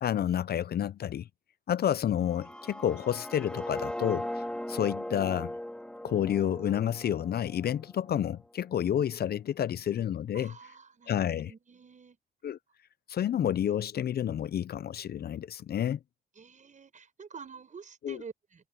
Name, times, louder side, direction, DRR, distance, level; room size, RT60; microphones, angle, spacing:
voice 1, 0.0-1.3 1.7-5.6 6.0-10.5 11.1-11.5 12.4-12.6 13.1-16.0 18.0-18.2, left 10 dB, 55° left, 0.6 m, -30 dB
sound 1, 2.2-8.2, left 1 dB, 5° left, 3.6 m, -39 dB
voice 2, 10.3-12.2 16.4-18.7, right 5 dB, 40° right, 5.3 m, -48 dB
cardioid pair, 90°, 20 cm